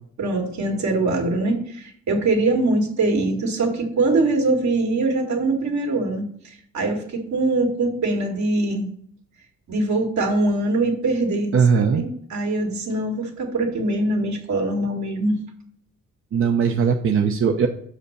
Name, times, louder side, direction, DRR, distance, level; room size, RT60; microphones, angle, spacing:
voice 1, 0.2-8.9 9.7-15.4, right 2 dB, 65° right, 1 dB, 2.4 m, -23 dB
voice 2, 11.5-12.0 16.3-17.7, right 6 dB, 45° right, 4 dB, 0.7 m, -19 dB
6.6 x 5.1 x 6.7 m, 0.62 s
cardioid pair, 90°, 30 cm